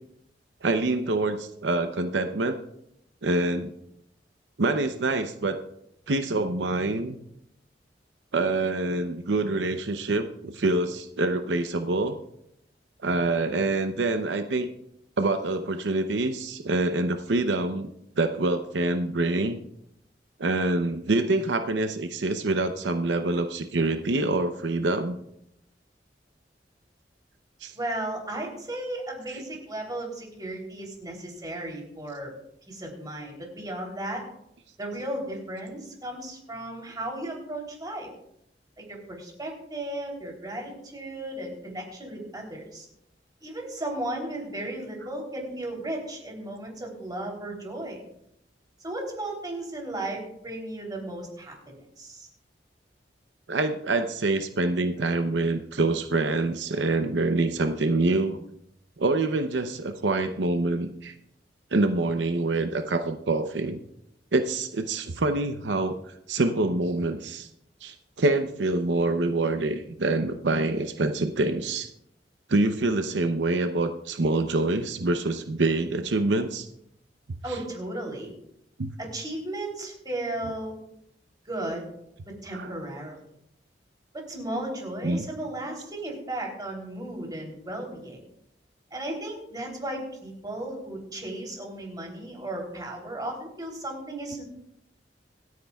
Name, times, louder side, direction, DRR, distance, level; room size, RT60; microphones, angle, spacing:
voice 1, 0.6-2.6 3.2-3.7 4.6-5.6 6.1-7.2 8.3-12.1 13.0-14.7 15.2-17.9 18.2-19.6 20.4-25.2 27.6-27.7 53.5-58.4 59.0-61.1 61.7-63.8 64.3-66.0 66.3-67.5 67.8-71.9 72.5-76.7 78.8-78.9 82.5-82.7 85.0-85.3, right 2 dB, 85° right, 7 dB, 0.7 m, -26 dB
voice 2, 27.7-32.3 32.7-34.2 34.8-38.1 38.8-42.9 43.4-48.0 48.8-51.5 52.0-52.3 77.4-78.3 79.0-80.7 81.4-81.9 82.2-83.2 84.1-88.2 88.9-94.4, right 1 dB, 25° right, 0 dB, 3.2 m, -35 dB
25.5 x 9.4 x 2.3 m, 0.77 s
head